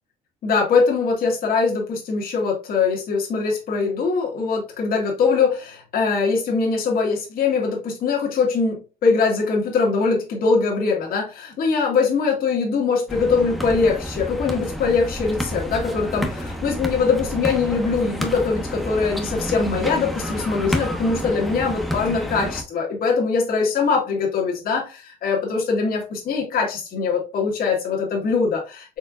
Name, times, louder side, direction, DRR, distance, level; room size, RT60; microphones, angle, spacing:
voice 1, 0.4-29.0, left 4 dB, 60° left, 0 dB, 1.5 m, -22 dB
sound 1, 13.1-22.6, equal, ahead, 0.9 m, -29 dB
4.4 x 3.6 x 2.3 m, 0.31 s
cardioid pair, 110°, 17 cm